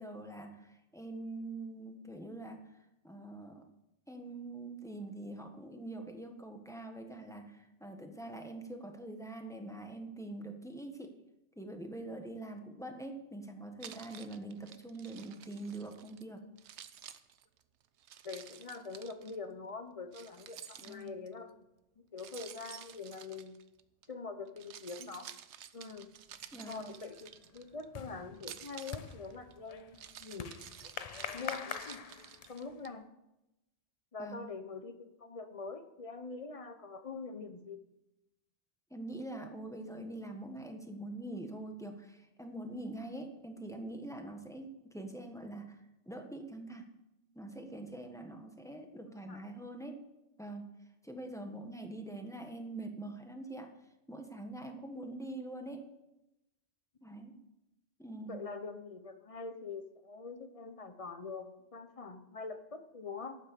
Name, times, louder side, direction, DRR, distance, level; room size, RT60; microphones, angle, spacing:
voice 1, 0.0-2.6 3.0-3.6 4.1-11.1 11.6-16.4 20.8-21.1 26.5-26.9 34.2-34.4 38.9-46.9 47.3-50.0 50.4-50.7 51.0-53.7 54.1-55.8 57.0-57.4 58.0-58.4, right 2 dB, 5° left, 4 dB, 1.4 m, -44 dB
Keys jangling, 13.8-16.2 16.6-19.4 20.1-21.3 22.2-24.1 24.5-27.9 28.3-32.9, right 9 dB, 70° right, 1.0 m, -51 dB
voice 2, 18.2-21.5 22.0-23.6 24.1-25.3 25.7-26.1 26.6-30.6 31.3-31.7 32.5-33.0 34.1-37.8 49.1-49.5 58.3-63.4, left 4 dB, 30° left, 9 dB, 1.0 m, -44 dB
sound 1, 26.3-26.7 27.0-32.8, left 7 dB, 55° left, 0.4 m, -45 dB
12.0 x 8.9 x 6.8 m, 0.91 s
omnidirectional pair, 1.2 m